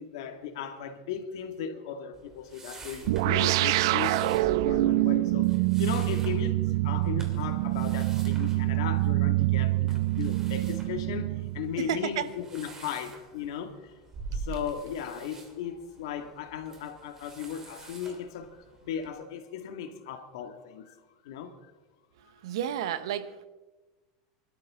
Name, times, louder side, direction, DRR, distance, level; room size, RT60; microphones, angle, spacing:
voice 1, 0.0-13.9 14.3-21.7, left 8 dB, 80° left, 2.1 m, -37 dB
sound 1, 2.1-19.1, right 4 dB, 20° right, 2.8 m, -46 dB
sound 2, 3.1-11.9, right 18 dB, 70° right, 0.4 m, -26 dB
voice 2, 11.8-12.3 14.3-14.4 22.2-23.4, right 10 dB, 85° right, 1.2 m, -32 dB
25.0 x 12.5 x 3.7 m
supercardioid pair, 155°, 3 cm